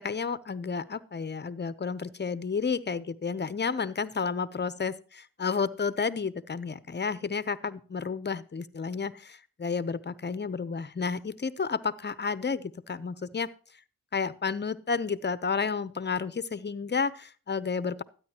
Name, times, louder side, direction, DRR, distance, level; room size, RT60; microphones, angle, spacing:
voice 1, 0.0-13.5 14.1-18.0, left 5 dB, 30° left, 16 dB, 0.7 m, -31 dB
12.5 x 9.5 x 2.9 m, 0.39 s
cardioid pair, 65°, 34 cm